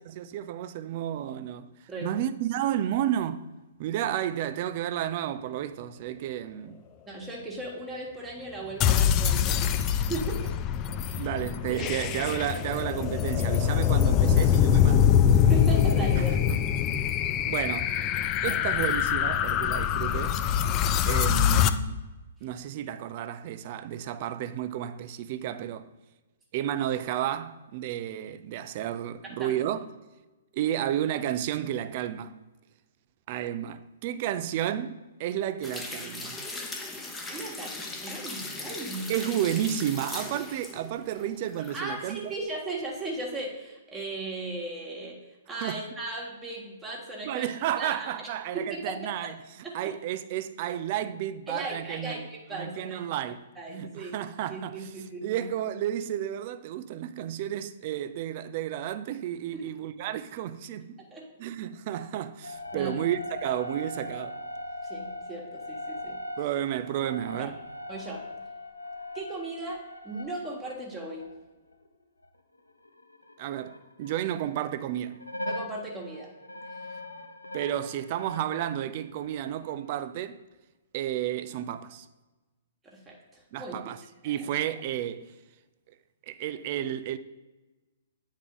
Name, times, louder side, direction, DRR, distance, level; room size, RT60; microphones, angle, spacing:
voice 1, 0.0-1.7 2.0-3.5 3.8-6.8 11.1-15.2 16.2-16.6 17.4-17.9 18.4-20.4 21.1-22.0 22.4-25.9 26.5-29.9 30.5-32.3 33.3-36.5 39.1-42.3 45.6-45.8 47.2-49.4 49.7-54.9 55.2-60.9 61.4-64.4 66.4-67.6 73.4-75.3 77.5-80.4 80.9-82.1 83.5-85.3 86.3-87.2, right 11 dB, 40° right, 0.4 m, -32 dB
voice 2, 7.1-10.5 11.0-11.3 11.7-11.9 13.4-13.5 15.5-16.4 18.4-18.6 29.4-29.5 37.3-39.1 41.7-45.2 45.5-47.5 47.8-48.3 48.5-49.0 49.6-49.7 51.5-53.0 53.5-54.2 54.5-55.4 59.5-59.6 61.1-61.3 62.7-63.0 64.8-66.2 67.4-67.5 67.9-68.2 69.1-69.8 70.0-71.2 75.5-76.3 82.8-83.9 84.2-84.5, right 2 dB, 15° right, 1.3 m, -37 dB
sound 1, 8.8-21.7, left 9 dB, 30° left, 0.3 m, -24 dB
sound 2, 35.6-41.9 42.2-42.3, left 2 dB, 10° left, 0.9 m, -39 dB
sound 3, 62.4-72.3 72.5-74.8 75.1-78.7 79.2-79.7, left 1 dB, 85° left, 0.6 m, -40 dB
9.1 x 3.6 x 3.8 m
figure-of-eight pair, 120°, 0 cm